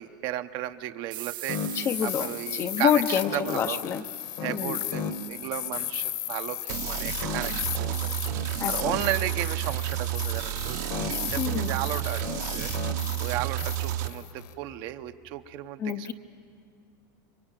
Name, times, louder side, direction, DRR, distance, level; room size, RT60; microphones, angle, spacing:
voice 1, 0.0-1.6 2.0-3.0 3.3-3.9 4.4-8.1 8.6-12.3 12.6-16.1, right 13 dB, 45° right, 9 dB, 0.9 m, -34 dB
sound 1, 1.1-4.4, right 13 dB, 90° right, 0.8 m, -42 dB
sound 2, 1.5-14.5, left 9 dB, 40° left, 1.3 m, -35 dB
voice 2, 1.7-4.0 4.4-4.8 8.6-9.0 11.4-11.8 15.8-16.1, left 8 dB, 25° left, 9 dB, 0.7 m, -27 dB
sound 3, 6.7-14.1, right 15 dB, 60° right, 1.3 m, -31 dB
26.5 x 24.0 x 9.0 m, 2.3 s
supercardioid pair, 155°, 11 cm